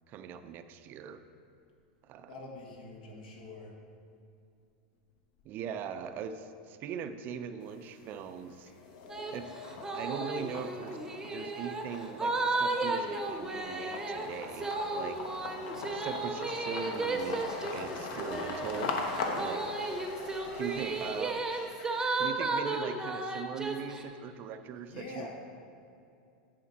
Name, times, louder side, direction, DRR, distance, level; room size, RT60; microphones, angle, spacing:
voice 1, 0.1-1.2 2.0-2.4 5.4-8.7 9.3-9.5 9.9-11.0 11.2-15.3 15.9-18.9 19.3-19.6 20.5-21.5 22.1-25.3, right 7 dB, 40° right, 10 dB, 0.5 m, -40 dB
voice 2, 2.3-3.7 24.8-25.3, left 3 dB, 80° left, 0 dB, 1.7 m, -45 dB
sound 1, 7.6-8.3 8.7-22.2, left 3 dB, 65° left, 1.0 m, -40 dB
sound 2, 9.1-9.3 9.6-24.0, right 3 dB, 10° right, 0.8 m, -34 dB
10.0 x 5.1 x 4.2 m, 2.5 s
supercardioid pair, 125°, 5 cm